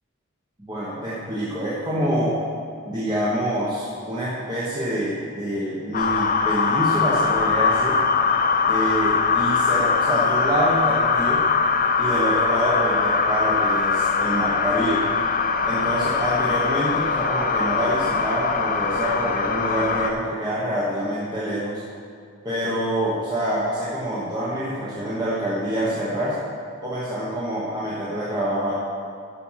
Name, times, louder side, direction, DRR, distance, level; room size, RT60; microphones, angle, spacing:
voice 1, 0.7-2.4 2.9-8.0 8.7-11.4 12.0-15.0 15.6-21.8 22.4-26.3 26.8-28.7, right 1 dB, 20° right, -8 dB, 1.2 m, -26 dB
sound 1, 5.9-20.1, left 5 dB, 35° left, 0.4 m, -22 dB
11.0 x 5.9 x 5.7 m, 2.3 s
head